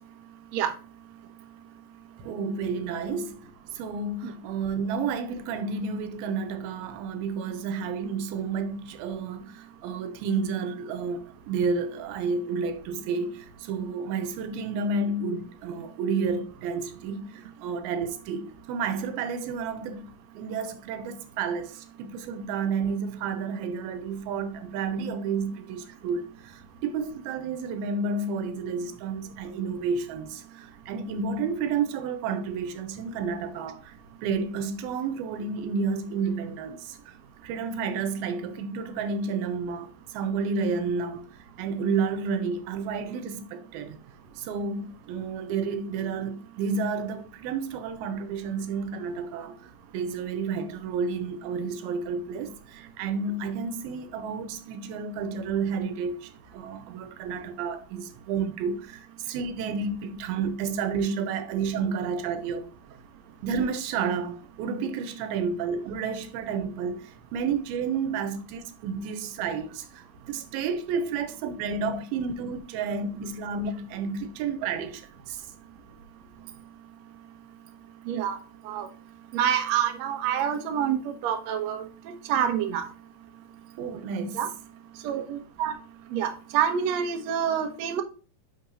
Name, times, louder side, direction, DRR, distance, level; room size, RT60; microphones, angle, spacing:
voice 1, 2.2-20.1 20.3-33.9 34.2-37.2 37.4-41.3 41.6-44.0 44.4-49.6 49.9-62.7 63.4-75.0 75.3-75.5 83.8-84.4, right 5 dB, 90° right, 2.6 m, -31 dB
voice 2, 78.1-78.4 78.6-78.9 79.3-82.8 84.3-84.5 85.0-85.7 86.1-88.0, right 9 dB, 70° right, 1.7 m, -27 dB
10.5 x 4.5 x 2.8 m
omnidirectional pair, 4.3 m